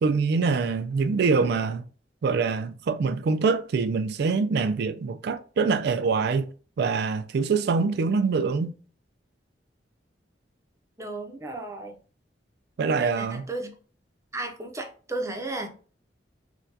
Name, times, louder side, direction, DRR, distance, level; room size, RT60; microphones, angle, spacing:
voice 1, 0.0-1.8 2.2-6.5 6.8-8.7 12.8-13.5, right 4 dB, 65° right, 0.3 m, -24 dB
voice 2, 11.0-12.0 12.8-13.7 14.3-15.7, right 2 dB, 15° right, 0.6 m, -34 dB
4.4 x 2.2 x 2.7 m
head